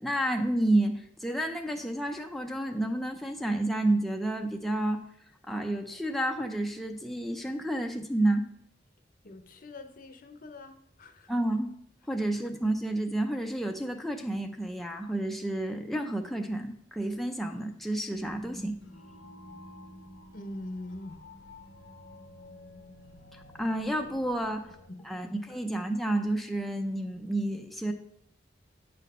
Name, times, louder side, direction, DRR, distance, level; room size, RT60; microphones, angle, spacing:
voice 1, 0.0-5.0 5.5-8.5 11.3-11.7 12.1-18.8 23.3-24.7 25.0-27.9, right 1 dB, ahead, 3 dB, 0.5 m, -30 dB
voice 2, 9.2-11.3 20.3-21.2 24.9-25.1 25.5-25.6, left 1 dB, 50° left, 6 dB, 0.7 m, -43 dB
sound 1, 18.1-24.9, left 1 dB, 90° left, 0.9 m, -50 dB
9.0 x 4.2 x 5.4 m, 0.68 s
head